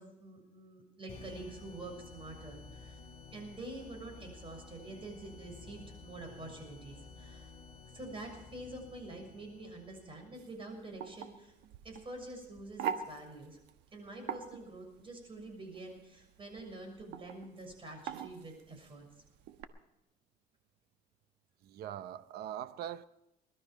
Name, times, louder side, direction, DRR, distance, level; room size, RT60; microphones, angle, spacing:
voice 1, 0.0-3.0 3.3-7.5 7.9-11.5 11.8-13.6 13.9-19.0, right 2 dB, 30° right, 6.7 m, -47 dB
sound 1, 1.1-10.5, left 4 dB, 35° left, 4.4 m, -53 dB
sound 2, 10.3-19.6, right 8 dB, 90° right, 1.2 m, -44 dB
voice 2, 21.6-23.0, right 11 dB, 70° right, 0.7 m, -42 dB
21.0 x 13.0 x 5.2 m
cardioid pair, 110°, 17 cm